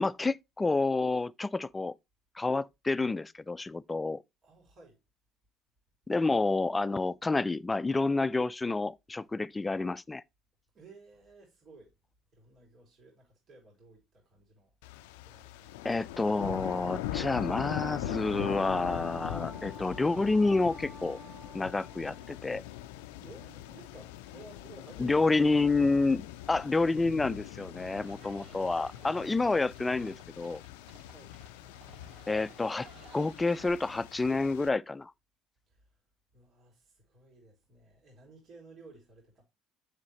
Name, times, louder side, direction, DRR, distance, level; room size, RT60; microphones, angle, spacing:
voice 1, 0.0-1.9 2.4-4.2 6.1-10.2 15.8-21.2 21.5-22.6 25.0-30.6 32.3-32.9 33.1-35.1, left 3 dB, 20° left, 0.4 m, -29 dB
voice 2, 4.4-5.0 10.7-11.9 12.3-14.7 15.2-15.8 22.6-22.8 23.2-25.8 31.0-31.3 35.7-35.9 36.3-39.4, right 3 dB, 55° right, 3.2 m, -55 dB
sound 1, 14.8-34.7, left 13 dB, 90° left, 0.4 m, -41 dB
Wind instrument woodwind instrument, 18.0-22.7, right 2 dB, 40° right, 1.8 m, -52 dB
Livestock farm animals working animals, 27.7-33.7, right 3 dB, 80° right, 2.5 m, -56 dB
7.2 x 6.5 x 3.1 m
supercardioid pair, 75°, 0 cm